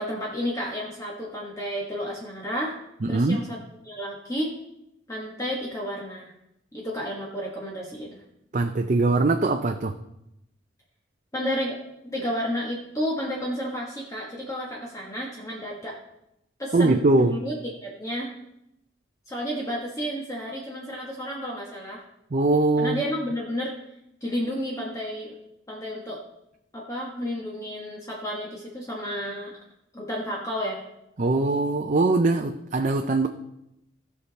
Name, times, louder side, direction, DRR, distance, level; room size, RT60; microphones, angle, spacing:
voice 1, 0.0-2.8 3.1-3.6 3.8-4.5 5.1-6.3 6.7-8.2 11.3-11.8 12.0-16.0 16.6-17.5 17.8-18.3 19.3-22.0 22.8-23.7 24.2-25.4 25.7-26.2 26.7-29.6 29.9-30.8, equal, 20° left, -3 dB, 1.4 m, -31 dB
voice 2, 3.0-3.4 8.5-9.9 16.7-17.4 22.3-23.0 31.2-33.3, right 2 dB, 40° right, 5 dB, 0.5 m, -22 dB
16.0 x 5.9 x 4.1 m, 0.85 s
head